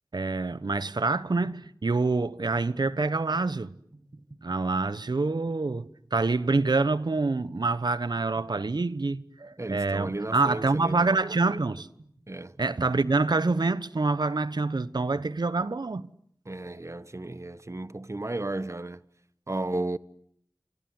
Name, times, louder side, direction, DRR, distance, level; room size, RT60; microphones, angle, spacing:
voice 1, 0.1-3.7 4.4-11.9 12.6-16.1, right 3 dB, 80° right, 1.1 m, -26 dB
sound 1, 1.4-13.3, right 2 dB, 60° right, 5.7 m, -54 dB
voice 2, 9.6-11.1 12.3-12.6 16.4-19.0 19.5-20.0, right 2 dB, 40° right, 1.3 m, -34 dB
30.0 x 25.0 x 7.8 m
wide cardioid pair, 40°, 7 cm